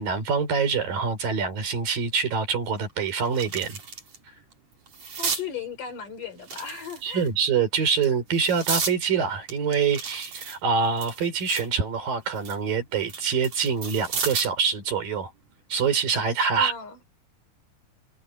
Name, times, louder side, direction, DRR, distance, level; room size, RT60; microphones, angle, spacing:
voice 1, 0.0-3.8 7.0-15.3 15.7-16.7, right 6 dB, 80° right, 6.2 m, -25 dB
sound 1, 2.2-2.3 2.7-4.2 4.5-5.5 6.4-7.3 7.9-9.0 9.5-11.7 12.1-14.6 16.0-16.2, right 5 dB, 50° right, 4.9 m, -33 dB
voice 2, 5.2-7.3 16.6-17.0, left 7 dB, 70° left, 5.9 m, -36 dB
omnidirectional pair, 4.0 m